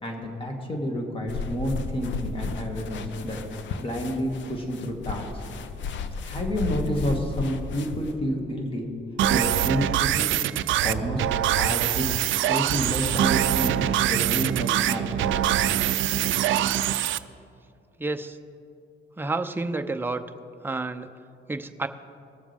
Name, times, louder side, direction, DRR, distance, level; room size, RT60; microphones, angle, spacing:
voice 1, 0.0-3.4 3.8-5.4 6.2-8.9 9.3-10.3 10.8-11.2 11.5-12.1 12.5-15.4, equal, 25° left, 1 dB, 2.1 m, -29 dB
sound 1, 1.3-8.1, left 4 dB, 70° left, 0.7 m, -34 dB
sound 2, 9.2-17.2, right 12 dB, 75° right, 0.4 m, -24 dB
voice 2, 18.0-18.4 19.2-20.2 20.6-21.1 21.5-21.9, right 3 dB, 10° right, 7 dB, 0.6 m, -29 dB
20.5 x 7.1 x 3.5 m, 2.5 s
cardioid pair, 90°, 20 cm